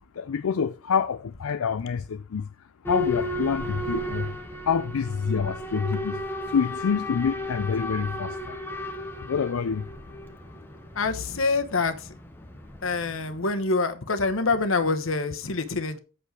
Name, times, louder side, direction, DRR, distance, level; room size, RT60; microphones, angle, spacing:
voice 1, 0.2-2.5 2.9-4.3 4.6-6.2 6.5-8.6 9.2-9.8, left 6 dB, 85° left, 0.5 m, -27 dB
Boat Water vehicle / Alarm, 2.8-13.5, left 1 dB, 10° left, 1.0 m, -34 dB
voice 2, 11.0-12.1 12.8-16.0, left 3 dB, 70° left, 1.1 m, -26 dB
8.1 x 6.5 x 4.7 m
head